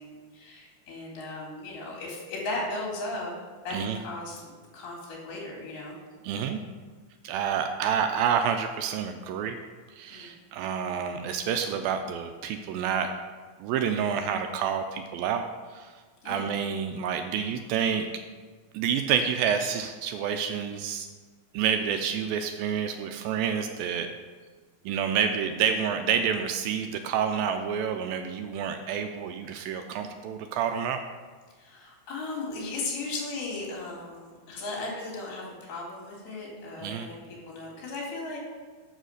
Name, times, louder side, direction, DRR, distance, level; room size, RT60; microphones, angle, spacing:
voice 1, 0.0-3.3 3.6-6.0 10.1-10.3 16.2-16.5 31.6-38.4, left 2 dB, 80° left, -3 dB, 4.2 m, -36 dB
voice 2, 6.2-6.6 7.2-9.6 9.9-13.1 13.6-18.1 18.7-21.1 21.5-24.1 24.9-31.0 36.8-37.1, right 7 dB, 80° right, 6 dB, 2.2 m, -28 dB
7.3 x 6.4 x 6.4 m, 1.4 s
omnidirectional pair, 4.4 m